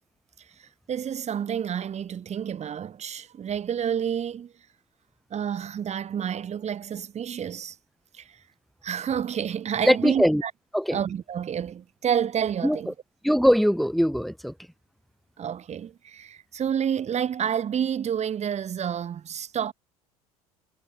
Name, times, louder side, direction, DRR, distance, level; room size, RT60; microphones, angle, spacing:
voice 1, 0.6-4.5 5.3-7.8 8.2-8.4 8.8-10.5 10.9-12.9 15.4-19.7, right 8 dB, 35° right, 2.2 m, -29 dB
voice 2, 9.8-10.4 10.7-11.0 12.6-12.9 13.2-14.5, equal, ahead, 2.1 m, -21 dB
figure-of-eight pair, 65°, 19 cm